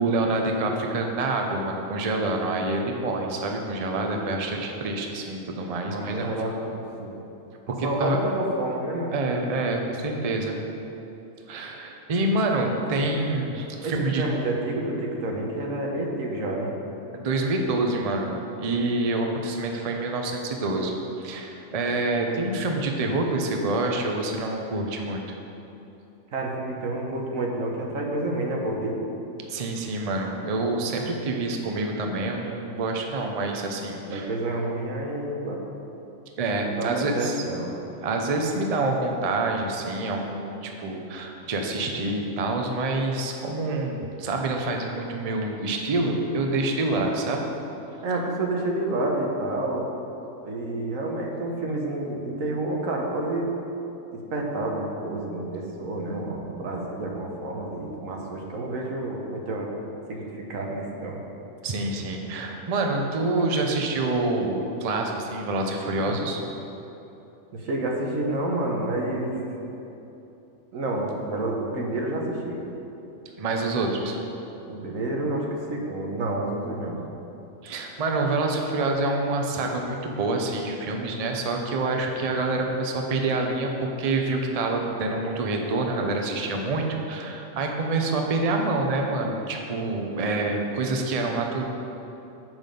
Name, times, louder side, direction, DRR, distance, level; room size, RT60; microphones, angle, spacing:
voice 1, 0.0-6.3 7.7-8.2 9.1-10.6 11.5-14.2 17.1-18.3 18.6-20.9 21.2-25.2 29.5-34.3 36.4-37.4 38.0-47.4 61.6-66.4 73.4-74.2 77.6-91.6, right 2 dB, 40° right, 2 dB, 0.6 m, -27 dB
voice 2, 5.8-7.1 7.8-9.2 13.8-16.7 26.3-29.0 34.1-35.6 36.7-37.7 48.0-49.9 50.4-53.5 54.1-59.7 60.1-61.2 66.1-66.2 67.5-69.5 70.7-72.6 74.7-77.0, right 2 dB, 85° right, 0 dB, 1.4 m, -29 dB
7.2 x 6.1 x 5.1 m, 3.0 s
omnidirectional pair, 1.4 m